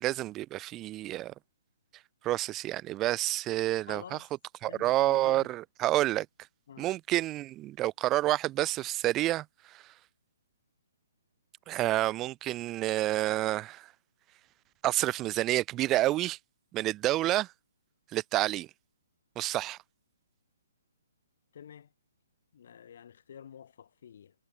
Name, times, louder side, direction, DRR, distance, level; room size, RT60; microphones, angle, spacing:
voice 1, 0.0-1.3 2.2-4.2 4.6-6.3 6.8-9.9 11.7-13.9 14.8-16.4 16.7-17.5 18.1-18.7 19.4-19.8, right 15 dB, 20° right, 0.5 m, -29 dB
voice 2, 3.9-4.3 4.7-5.5 6.7-6.9 21.5-21.9 22.5-24.3, left 8 dB, 60° left, 4.6 m, -49 dB
hypercardioid pair, 140°, 0 cm